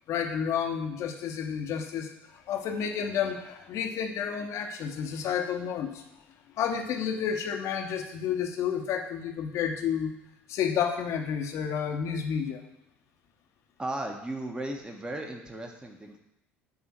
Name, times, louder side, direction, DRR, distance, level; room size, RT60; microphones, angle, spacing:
voice 1, 0.1-6.0 6.6-10.1 10.5-12.6, left 7 dB, 50° left, 4 dB, 1.1 m, -30 dB
voice 2, 13.8-16.2, right 1 dB, 15° right, 2 dB, 1.3 m, -36 dB
9.6 x 3.7 x 6.1 m, 0.87 s
figure-of-eight pair, 60°, 6 cm